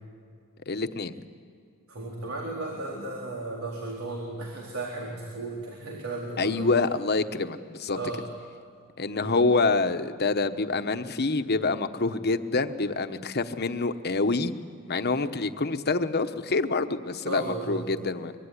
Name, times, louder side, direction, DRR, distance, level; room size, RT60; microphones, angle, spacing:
voice 1, 0.7-1.1 6.4-8.0 9.0-14.5 14.9-18.3, left 3 dB, 50° left, 9 dB, 1.1 m, -26 dB
voice 2, 1.9-6.7 8.0-8.3 9.2-9.4 17.3-17.9, right 2 dB, 90° right, -2 dB, 3.9 m, -35 dB
24.5 x 23.5 x 10.0 m, 2.2 s
head